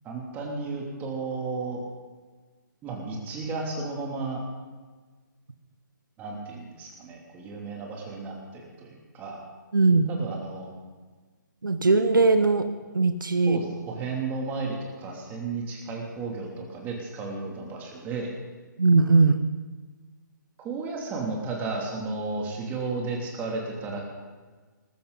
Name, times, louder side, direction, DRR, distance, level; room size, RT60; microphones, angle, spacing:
voice 1, 0.0-1.8 2.8-4.4 6.2-9.4 10.1-10.7 13.5-18.3 20.6-24.0, right 3 dB, 15° right, -1 dB, 2.9 m, -33 dB
voice 2, 9.7-10.1 11.6-12.7 12.9-13.6 18.8-19.4, right 3 dB, 80° right, 9 dB, 1.1 m, -19 dB
19.5 x 14.5 x 4.1 m, 1.4 s
figure-of-eight pair, 140°, 11 cm